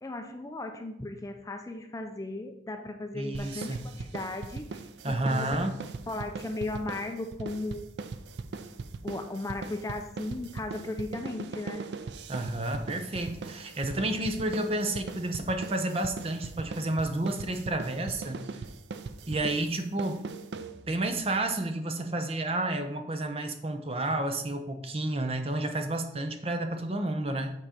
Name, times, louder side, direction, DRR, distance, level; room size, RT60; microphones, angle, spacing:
voice 1, 0.0-4.8 5.0-5.7 6.1-7.9 9.0-11.8, left 2 dB, 20° left, 6 dB, 0.5 m, -36 dB
voice 2, 3.1-3.9 5.0-5.8 12.3-18.6 19.3-20.2 20.9-27.5, right 1 dB, 35° right, 6 dB, 0.7 m, -31 dB
sound 1, 3.3-21.1, right 4 dB, 75° right, 0.4 m, -40 dB
7.5 x 4.1 x 5.0 m, 0.82 s
head